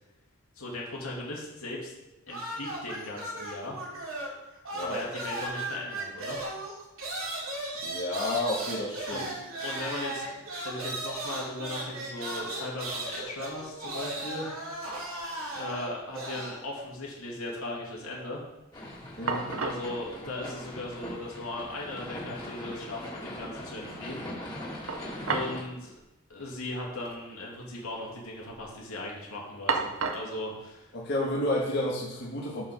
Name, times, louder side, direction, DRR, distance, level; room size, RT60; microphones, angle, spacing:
voice 1, 0.6-1.9 2.3-3.8 4.8-6.4 9.1-10.3 10.6-14.5 15.5-18.4 19.6-24.2 25.3-25.9 26.3-30.9, left 2 dB, 85° left, -3 dB, 2.9 m, -38 dB
sound 1, 2.3-4.4 4.6-16.6, right 1 dB, 85° right, 3.7 m, -36 dB
voice 2, 7.8-9.3 19.2-19.5 30.9-32.7, left 1 dB, 55° left, -4 dB, 1.9 m, -31 dB
sound 2, 13.3-13.7 14.1-15.0 15.2-15.3 18.8-18.9 19.3-19.9 21.0-21.1 21.5-21.6 24.9-25.6 25.9-26.0 26.9-27.2 27.5-28.0 28.4-28.8 29.7-30.4, right 4 dB, 70° right, 0.9 m, -33 dB
sound 3, 18.7-25.6, left 1 dB, 20° left, 2.8 m, -40 dB
9.7 x 5.5 x 6.4 m, 0.98 s
head